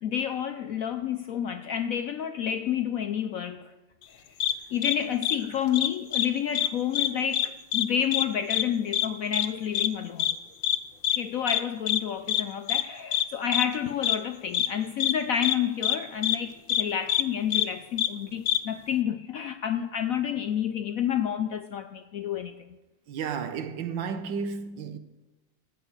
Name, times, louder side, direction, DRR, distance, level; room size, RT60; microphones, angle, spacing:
voice 1, 0.0-3.7 4.1-4.3 4.7-10.3 11.1-22.6, left 9 dB, 70° left, 0.8 m, -29 dB
sound 1, 4.4-4.5 4.8-5.0 5.2-5.4 5.7-6.3 6.5-6.7 6.9-7.5 7.7-7.9 8.1-8.3 8.5-8.6 8.9-9.1 9.3-9.5 9.7-9.9 10.2-10.3 10.6-10.8 11.0-11.2 11.5-11.6 11.9-12.0 12.3-12.4 12.7-12.8 13.1-13.2 13.5-13.7 14.0-14.2 14.5-14.7 15.0-15.1 15.4-15.6 15.8-16.0 16.2-16.4 16.7-16.8 17.1-17.2 17.5-17.7 18.0-18.1 18.5-18.6, left 13 dB, 85° left, 1.5 m, -25 dB
voice 2, 23.1-25.0, right 6 dB, 80° right, 1.7 m, -32 dB
15.0 x 5.9 x 8.7 m
omnidirectional pair, 2.0 m